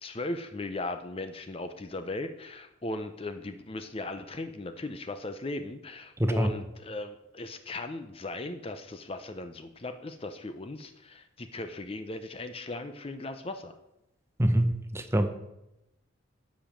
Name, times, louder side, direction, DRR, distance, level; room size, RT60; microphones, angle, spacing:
voice 1, 0.0-13.7, left 2 dB, 25° left, 8 dB, 0.5 m, -37 dB
voice 2, 6.2-6.5 14.4-15.3, right 1 dB, 10° right, 8 dB, 0.7 m, -25 dB
10.5 x 5.2 x 7.4 m, 0.89 s
head